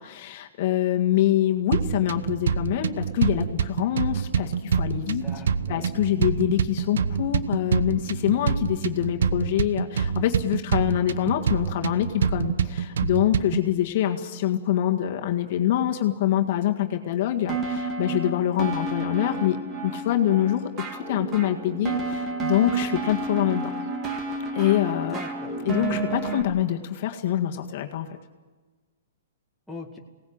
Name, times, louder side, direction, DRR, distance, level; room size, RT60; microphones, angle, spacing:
voice 1, 0.0-5.2 5.7-19.6 19.8-23.7 24.6-25.2 25.6-28.2, left 12 dB, 45° left, 3 dB, 1.8 m, -25 dB
sound 1, 1.7-13.7, right 7 dB, 80° right, 0.9 m, -26 dB
voice 2, 5.2-6.3 6.7-6.8 25.1-25.8 29.7-30.0, left 2 dB, ahead, -3 dB, 2.1 m, -42 dB
sound 2, 17.5-26.4, right 3 dB, 20° right, 2.1 m, -30 dB
22.5 x 18.0 x 8.8 m, 1.3 s
hypercardioid pair, 155°, 0 cm